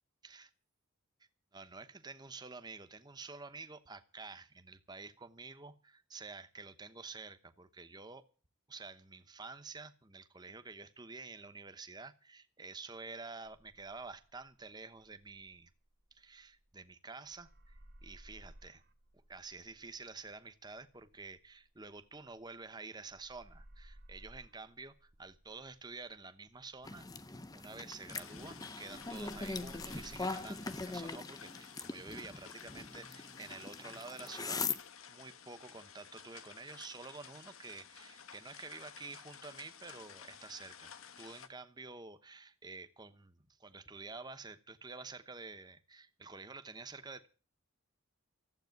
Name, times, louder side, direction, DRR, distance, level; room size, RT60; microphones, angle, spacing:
voice 1, 1.5-8.2 8.7-15.7 16.1-18.8 19.3-27.1 27.5-34.7 35.1-47.3, right 4 dB, 20° right, 0.9 m, -49 dB
sound 1, 13.4-16.9 17.2-22.7 23.0-28.5 28.8-31.2, right 1 dB, 45° right, 1.3 m, -60 dB
sound 2, 26.8-34.8, left 4 dB, 15° left, 0.6 m, -41 dB
sound 3, 28.1-41.5, left 8 dB, 75° left, 1.2 m, -54 dB
14.5 x 8.2 x 9.3 m
head